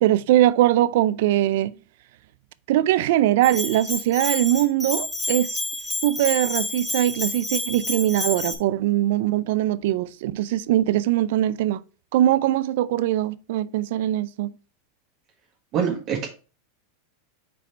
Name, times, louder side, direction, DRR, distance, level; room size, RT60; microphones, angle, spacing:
voice 1, 0.0-1.7 2.7-5.6 6.0-11.8 12.1-14.5, right 13 dB, 65° right, 0.4 m, -21 dB
Bell, 3.4-8.6, left 1 dB, 10° left, 1.3 m, -29 dB
voice 2, 15.7-16.3, right 7 dB, 40° right, 1.2 m, -24 dB
4.9 x 4.7 x 4.4 m
supercardioid pair, 140°, 0 cm